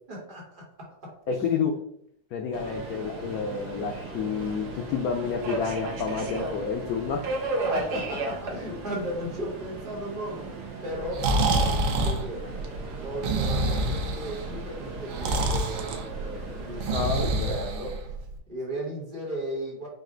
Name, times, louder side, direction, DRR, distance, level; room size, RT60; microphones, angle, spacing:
voice 1, 0.1-1.7 7.6-12.7 13.0-18.0 18.5-19.9, equal, 30° right, -3 dB, 1.4 m, -36 dB
voice 2, 1.3-1.7 2.3-7.3 16.9-17.6, left 6 dB, 85° left, 2 dB, 0.8 m, -29 dB
Subway metro underground, 2.5-17.1, right 2 dB, 60° right, 1.3 m, -36 dB
Breathing, 10.9-18.3, right 2 dB, 90° right, 1.5 m, -27 dB
5.3 x 2.4 x 3.7 m, 0.70 s
omnidirectional pair, 2.2 m